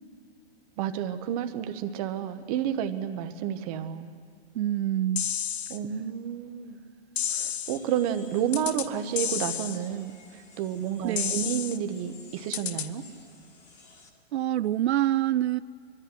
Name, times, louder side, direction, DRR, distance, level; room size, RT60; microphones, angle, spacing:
voice 1, 0.8-4.1 5.7-6.8 7.3-13.0, right 9 dB, 35° right, 9 dB, 1.1 m, -31 dB
voice 2, 4.5-5.3 11.0-11.4 14.3-15.6, right 12 dB, 85° right, 15 dB, 0.5 m, -26 dB
sound 1, 5.2-5.8 7.2-7.8 8.5-8.9 9.2-9.8 11.2-11.8 12.5-12.9, left 9 dB, 80° left, 0.9 m, -30 dB
sound 2, 7.6-14.1, left 3 dB, 20° left, 1.9 m, -53 dB
21.0 x 13.5 x 9.7 m, 2.3 s
hypercardioid pair, 150°, 32 cm